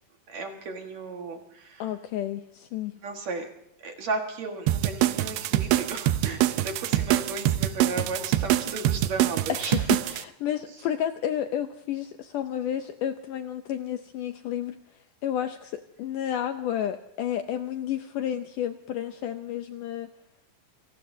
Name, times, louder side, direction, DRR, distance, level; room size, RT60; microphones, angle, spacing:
voice 1, 0.3-1.9 3.0-3.5 3.8-9.7, right 3 dB, 55° right, 3 dB, 2.4 m, -35 dB
voice 2, 1.8-2.9 9.5-14.8 15.2-20.1, left 10 dB, 80° left, 8 dB, 1.9 m, -31 dB
sound 1, 4.7-10.2, right 14 dB, 80° right, 2.6 m, -24 dB
28.5 x 18.5 x 2.7 m, 0.80 s
omnidirectional pair, 4.4 m